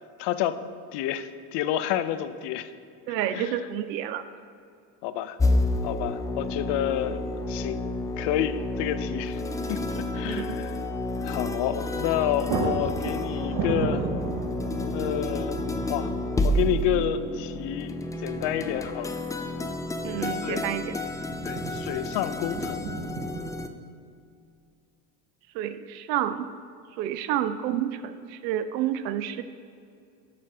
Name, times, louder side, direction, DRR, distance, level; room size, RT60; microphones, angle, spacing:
voice 1, 0.2-0.6 0.9-2.7 3.3-3.6 5.0-5.4 5.8-7.2 7.5-7.8 8.2-9.4 9.7-10.7 11.2-14.1 14.9-15.6 15.9-16.1 16.4-19.2 20.4-20.6 21.4-22.9, left 11 dB, 55° left, 12 dB, 0.7 m, -29 dB
voice 2, 3.1-4.2 10.2-10.6 20.0-21.0 25.5-26.5 26.9-29.4, right 11 dB, 85° right, 11 dB, 0.6 m, -29 dB
sound 1, 5.4-23.7, left 1 dB, 5° left, 0.4 m, -30 dB
sound 2, 7.3-7.6 7.9-8.0 11.7-11.9 12.2-23.6, right 5 dB, 45° right, 1.0 m, -36 dB
11.5 x 4.3 x 6.0 m, 2.5 s
hypercardioid pair, 80°, 50 cm